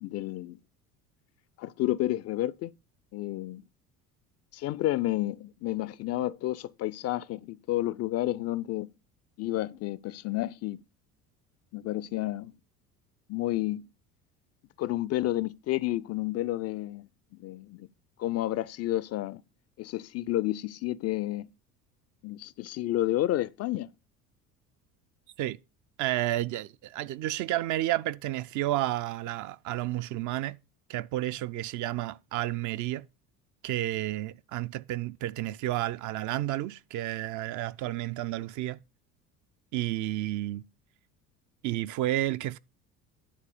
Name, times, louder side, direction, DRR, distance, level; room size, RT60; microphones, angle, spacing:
voice 1, 0.0-0.6 1.6-2.7 3.1-3.6 4.5-8.9 9.4-10.8 11.7-12.5 13.3-13.8 14.8-17.1 17.4-17.9 18.2-19.4 19.8-21.5 22.2-23.9, left 15 dB, 35° left, 0.4 m, -30 dB
voice 2, 26.0-30.6 30.9-33.1 33.6-38.8 39.7-40.6 41.6-42.6, right 15 dB, 45° right, 0.5 m, -31 dB
10.0 x 4.1 x 6.7 m
figure-of-eight pair, 65°, 44 cm